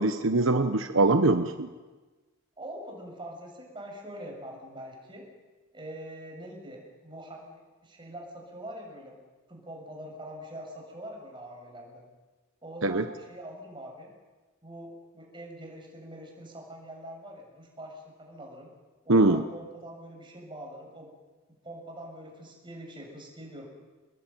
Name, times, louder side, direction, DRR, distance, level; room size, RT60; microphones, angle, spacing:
voice 1, 0.0-1.7 12.8-13.0 19.1-19.4, right 2 dB, 70° right, 8 dB, 1.2 m, -22 dB
voice 2, 2.6-5.3 5.7-9.2 9.5-12.0 12.6-14.1 14.6-18.7 19.0-21.1 21.6-23.7, right 1 dB, 25° right, 0 dB, 7.1 m, -44 dB
27.5 x 20.5 x 9.2 m, 1.3 s
head